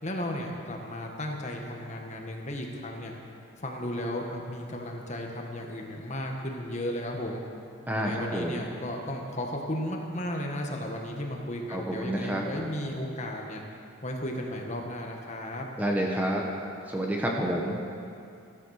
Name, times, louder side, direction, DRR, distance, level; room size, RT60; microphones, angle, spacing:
voice 1, 0.0-3.1 3.6-7.4 8.0-13.6 14.0-15.7, left 1 dB, 30° left, 1 dB, 1.7 m, -34 dB
voice 2, 7.9-8.7 11.7-12.4 15.8-16.4 16.9-17.8, right 1 dB, 10° right, -1 dB, 1.2 m, -29 dB
15.5 x 13.0 x 6.6 m, 2.5 s
head